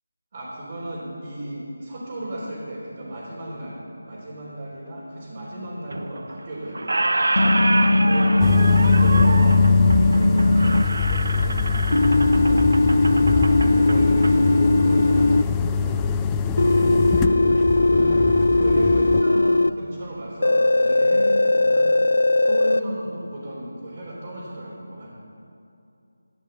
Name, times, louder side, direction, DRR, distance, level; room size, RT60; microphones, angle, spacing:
voice 1, 0.3-16.0 16.5-16.9 17.7-18.2 18.5-21.9 22.4-25.1, right 1 dB, 35° right, -8 dB, 4.0 m, -35 dB
Squeak, 5.9-6.5 6.7-14.3, right 2 dB, 75° right, 1.0 m, -27 dB
sound 1, 7.3-10.8 11.9-15.4 16.6-19.7 20.4-22.8, left 2 dB, 80° left, 0.4 m, -18 dB
sound 2, 8.4-19.2, left 5 dB, 10° left, 0.4 m, -23 dB
14.5 x 10.5 x 8.1 m, 2.6 s
figure-of-eight pair, 170°, 0 cm